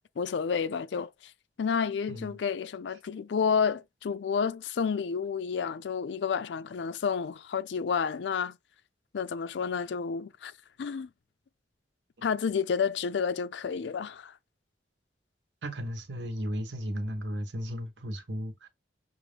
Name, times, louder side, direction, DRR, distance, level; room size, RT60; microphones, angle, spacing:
voice 1, 0.2-1.1 1.6-8.6 9.1-10.5 10.8-11.1 12.2-14.3, left 6 dB, 75° left, 0.4 m, -30 dB
voice 2, 2.1-2.4 15.6-18.7, equal, 80° right, 1.1 m, -35 dB
6.1 x 2.6 x 3.3 m
head